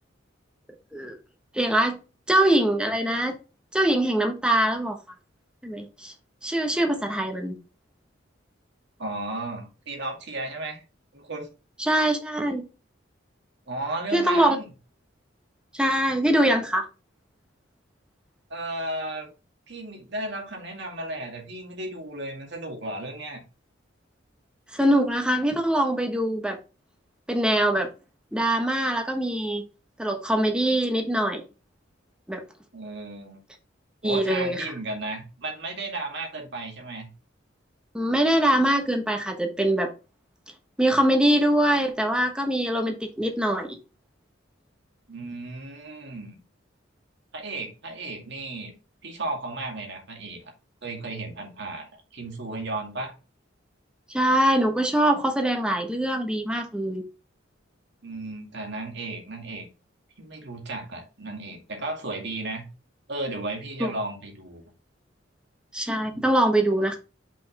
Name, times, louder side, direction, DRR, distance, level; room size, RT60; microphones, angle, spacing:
voice 1, 1.5-2.0 2.3-3.4 3.7-5.0 5.6-6.1 6.4-7.6 11.8-12.6 14.1-14.6 15.7-16.9 24.7-26.6 27.3-27.9 28.3-29.6 30.0-31.4 32.3-32.4 34.0-34.7 37.9-39.9 40.8-43.8 54.1-57.0 63.8-63.9 65.7-67.0, right 1 dB, 5° right, 1.2 m, -23 dB
voice 2, 9.0-10.8 11.1-11.5 13.7-14.7 18.5-19.3 19.7-23.4 32.7-33.4 34.0-37.1 45.1-46.4 47.3-48.7 49.0-50.5 50.8-53.1 58.0-59.7 60.2-62.7 63.1-64.6 66.1-66.2, right 2 dB, 65° right, 2.2 m, -34 dB
5.6 x 5.2 x 3.4 m
head